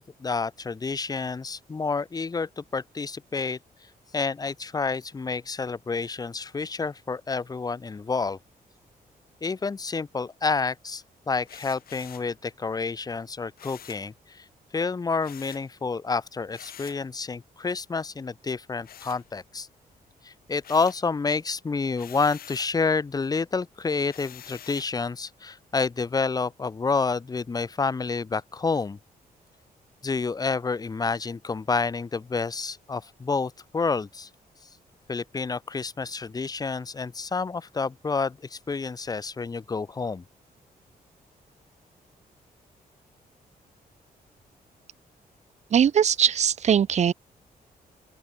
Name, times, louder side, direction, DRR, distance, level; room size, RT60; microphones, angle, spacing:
voice 1, 0.0-3.6 4.1-8.4 9.4-14.4 14.7-19.7 20.2-29.0 30.0-34.3 35.1-40.2, left 4 dB, 25° left, 1.3 m, -29 dB
sound 1, 11.5-12.3 13.6-14.1 15.2-15.7 16.5-17.1 18.8-19.7 20.1-21.1 21.9-22.8 24.1-25.0, left 10 dB, 70° left, 1.8 m, -46 dB
voice 2, 45.7-47.1, right 8 dB, 45° right, 0.7 m, -20 dB
open air
wide cardioid pair, 165°, 16 cm